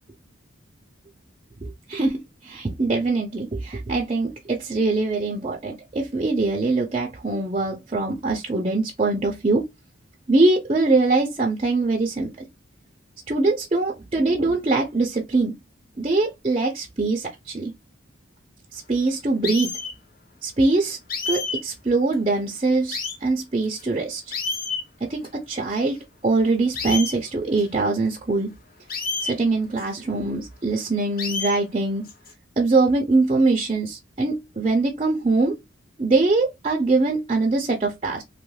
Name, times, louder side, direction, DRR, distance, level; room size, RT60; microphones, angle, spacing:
voice 1, 1.6-9.6 10.3-12.3 13.3-15.5 16.0-17.7 18.7-19.7 20.4-21.0 21.3-24.2 25.1-26.0 26.2-28.5 29.2-32.0 32.6-35.6 36.0-38.2, right 3 dB, 30° right, 0.5 m, -23 dB
sound 1, 19.4-20.0 21.1-21.6 22.1-22.2 22.9-23.2 23.8-23.9 24.3-24.8 25.2-25.3 25.7-25.8 26.8-27.2 27.6-27.7 28.9-29.3 29.8-29.9 31.2-31.6 32.1-32.3, left 4 dB, 50° left, 0.7 m, -29 dB
2.9 x 2.3 x 3.2 m
head